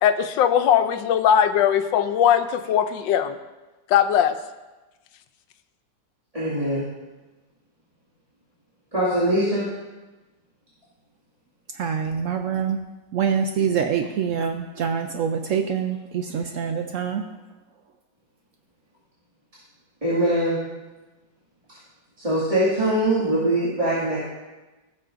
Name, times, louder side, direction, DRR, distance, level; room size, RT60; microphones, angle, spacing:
voice 1, 0.0-3.4 3.9-4.4, left 9 dB, 85° left, 9 dB, 1.3 m, -19 dB
voice 2, 6.3-6.9 8.9-9.7 20.0-20.6 22.2-24.2, right 1 dB, 20° right, -11 dB, 2.1 m, -22 dB
voice 3, 11.7-12.8 13.1-17.2, right 7 dB, 85° right, 5 dB, 0.7 m, -25 dB
16.5 x 6.5 x 2.5 m, 1.1 s
omnidirectional pair, 1.9 m